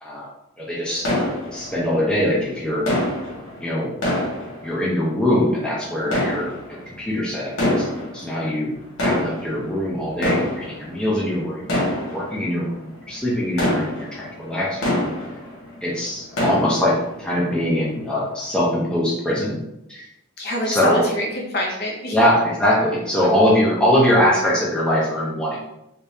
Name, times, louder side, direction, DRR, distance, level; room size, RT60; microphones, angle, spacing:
voice 1, 0.6-1.1 1.5-2.8 3.6-3.9 4.6-7.9 8.1-8.7 9.0-11.7 12.1-15.1 15.8-19.6 19.9-20.1 20.7-21.0 22.1-25.6, equal, 5° left, -6 dB, 0.7 m, -22 dB
sound 1, 1.0-2.1 2.9-5.2 6.0-7.0 7.5-8.4 8.8-15.8 16.1-17.2 17.6-17.7 18.3-18.5, left 1 dB, 80° left, 1.1 m, -26 dB
voice 2, 20.4-22.3, equal, 50° left, -2 dB, 0.8 m, -25 dB
3.5 x 2.9 x 2.8 m, 0.84 s
head